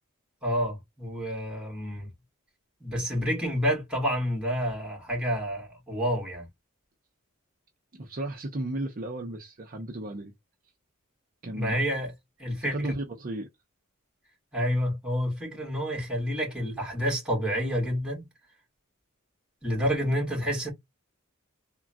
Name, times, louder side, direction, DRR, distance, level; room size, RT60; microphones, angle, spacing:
voice 1, 0.4-2.1 2.8-6.5 11.4-12.1 12.4-12.9 14.5-18.3 19.6-20.7, equal, 5° right, 1.7 m, -29 dB
voice 2, 7.9-10.3 11.4-11.8 12.7-13.5, right 1 dB, 45° right, 0.6 m, -34 dB
3.6 x 2.2 x 2.3 m
head